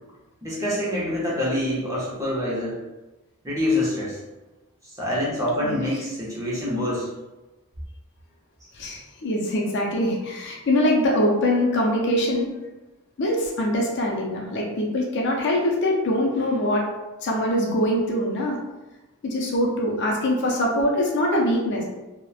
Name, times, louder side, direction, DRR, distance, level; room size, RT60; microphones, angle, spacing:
voice 1, 0.4-2.8 3.4-4.2 4.8-7.1, left 1 dB, 15° right, -6 dB, 0.6 m, -26 dB
voice 2, 8.7-12.5 13.2-16.8 17.2-18.6 19.2-21.8, left 1 dB, 55° left, -1 dB, 0.4 m, -23 dB
2.8 x 2.0 x 2.3 m, 1.1 s
head